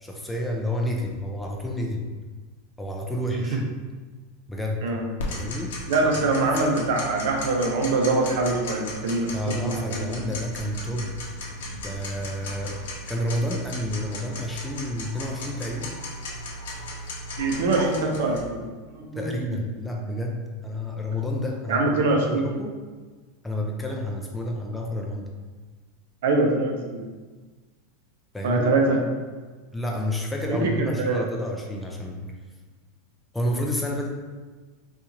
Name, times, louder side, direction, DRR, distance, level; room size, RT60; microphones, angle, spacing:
voice 1, 0.0-2.0 2.8-3.6 4.5-4.8 5.3-6.6 9.3-11.1 11.7-16.0 19.2-21.8 22.2-22.7 23.4-25.3 28.3-28.7 29.7-32.3 33.3-34.1, left 1 dB, 5° left, 0 dB, 0.3 m, -30 dB
Tick-tock, 5.2-18.4, left 1 dB, 80° left, 0.8 m, -36 dB
voice 2, 5.9-9.3 9.6-10.3 17.4-18.6 18.9-19.3 21.7-22.5 26.2-27.0 28.4-29.0 30.5-30.7 31.1-31.2, right 2 dB, 70° right, 1 dB, 0.7 m, -23 dB
4.2 x 2.5 x 2.8 m, 1.4 s
supercardioid pair, 160°, 0 cm